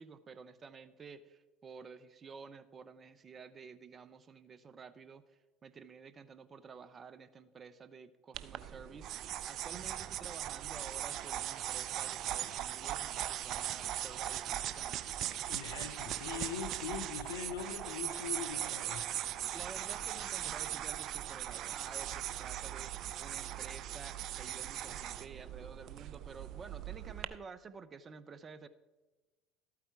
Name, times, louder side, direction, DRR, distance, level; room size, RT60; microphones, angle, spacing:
voice 1, 0.0-5.2 5.6-15.0 19.5-28.7, right 5 dB, 35° right, 14 dB, 0.8 m, -51 dB
sound 1, 8.3-27.2, right 12 dB, 55° right, 0.5 m, -39 dB
voice 2, 15.5-19.1, left 8 dB, 90° left, 7 dB, 0.8 m, -42 dB
13.0 x 8.6 x 4.7 m, 1.2 s
hypercardioid pair, 75°, 0 cm